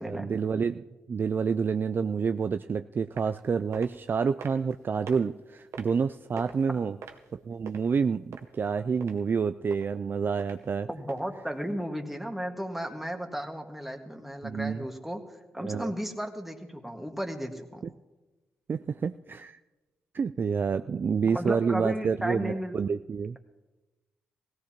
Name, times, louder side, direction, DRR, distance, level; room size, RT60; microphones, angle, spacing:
voice 1, 0.0-7.0 7.3-10.9 14.4-14.9 15.6-15.9 18.7-19.6 20.1-23.4, right 6 dB, 45° right, 10 dB, 0.3 m, -28 dB
sound 1, 3.2-3.4 3.7-3.9 4.4-4.7 5.1-5.2 5.7-6.0 6.4-6.6 7.0-7.8 8.3-8.7 9.0-9.1 9.7-9.9 10.4-10.6 11.1-11.2 11.7-11.8, right 6 dB, 70° right, 1.0 m, -42 dB
voice 2, 10.9-15.2 15.5-17.9 21.3-22.7, equal, 5° right, 4 dB, 1.7 m, -34 dB
17.0 x 15.5 x 2.9 m, 1.1 s
supercardioid pair, 45°, 5 cm